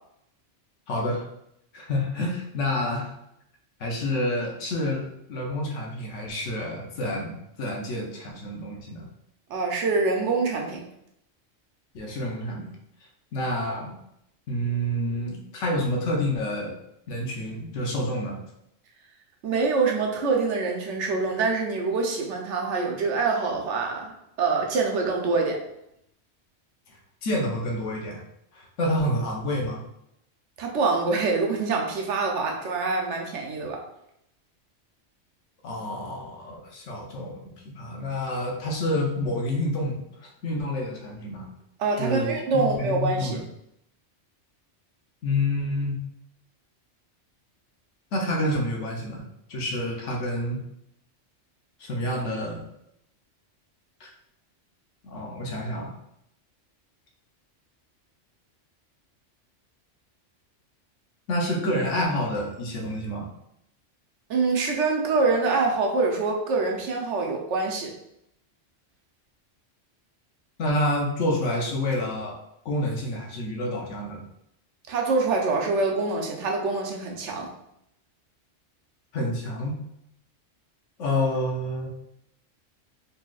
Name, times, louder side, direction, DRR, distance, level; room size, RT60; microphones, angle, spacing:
voice 1, 0.9-1.3 1.7-3.1 3.8-5.0 5.3-9.1 11.9-12.7 13.3-13.9 14.5-16.7 17.1-18.4 27.2-28.2 28.5-29.8 35.6-41.5 42.0-43.4 45.2-46.0 48.1-49.2 49.5-50.6 51.8-52.7 54.0-54.1 55.0-55.9 61.3-63.3 70.6-72.4 72.6-74.2 79.1-79.8 81.0-81.9, left 1 dB, 80° left, 0 dB, 1.1 m, -28 dB
voice 2, 9.5-10.8 19.4-24.1 24.4-25.6 30.6-33.8 41.8-43.4 64.3-67.9 74.9-77.5, right 4 dB, 75° right, 1 dB, 1.0 m, -25 dB
4.1 x 3.2 x 2.3 m, 0.78 s
omnidirectional pair, 1.2 m